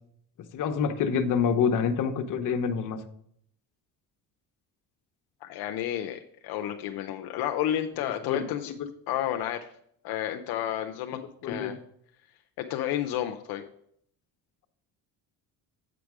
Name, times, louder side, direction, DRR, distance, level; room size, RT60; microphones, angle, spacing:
voice 1, 0.5-3.0 8.0-8.5 11.1-11.8, left 6 dB, 55° left, 6 dB, 0.9 m, -27 dB
voice 2, 5.4-8.7 9.1-9.7 10.0-11.8 12.6-13.6, left 11 dB, 75° left, 5 dB, 0.7 m, -31 dB
8.1 x 5.0 x 4.8 m, 0.68 s
cardioid pair, 110°, 38 cm